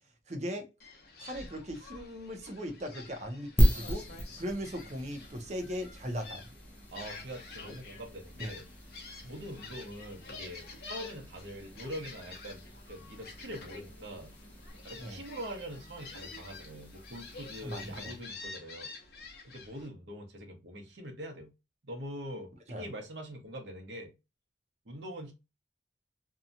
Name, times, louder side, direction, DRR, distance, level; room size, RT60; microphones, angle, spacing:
voice 1, 0.3-0.7 1.2-6.5 8.4-8.5 15.0-15.2 17.6-18.1 22.7-22.9, equal, 40° right, 0.7 m, -38 dB
Gull seagull, 0.8-19.9, left 4 dB, 55° left, 0.7 m, -49 dB
sound 1, 3.6-18.3, equal, 10° left, 0.5 m, -36 dB
voice 2, 6.9-8.7 9.2-14.3 14.8-18.9 19.4-21.5 21.9-24.1 24.9-25.3, equal, 75° right, 0.9 m, -43 dB
2.8 x 2.3 x 2.5 m
head